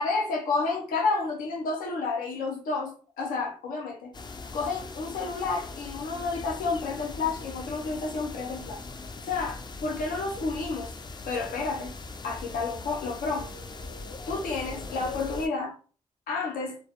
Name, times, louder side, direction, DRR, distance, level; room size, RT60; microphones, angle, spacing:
voice 1, 0.0-4.1 4.5-8.8 9.2-10.9 11.3-11.9 12.2-13.5 14.3-15.7 16.3-16.8, left 4 dB, 90° left, 0.5 m, -30 dB
sound 1, 4.1-15.5, left 3 dB, 30° left, 0.3 m, -40 dB
2.2 x 2.0 x 2.8 m
supercardioid pair, 40°, 14 cm